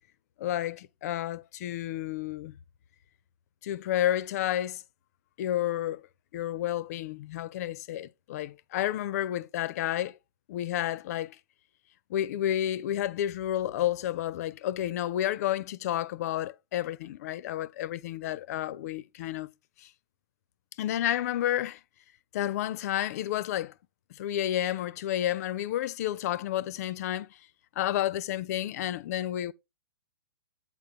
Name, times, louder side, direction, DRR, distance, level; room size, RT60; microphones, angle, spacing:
voice 1, 0.4-2.5 3.6-4.8 5.4-6.0 6.3-10.2 10.5-11.4 12.1-19.5 19.8-19.9 20.8-21.8 22.3-23.7 24.1-27.4 27.8-29.5, left 12 dB, 40° left, 0.4 m, -31 dB
8.4 x 3.8 x 4.4 m
figure-of-eight pair, 120°, 13 cm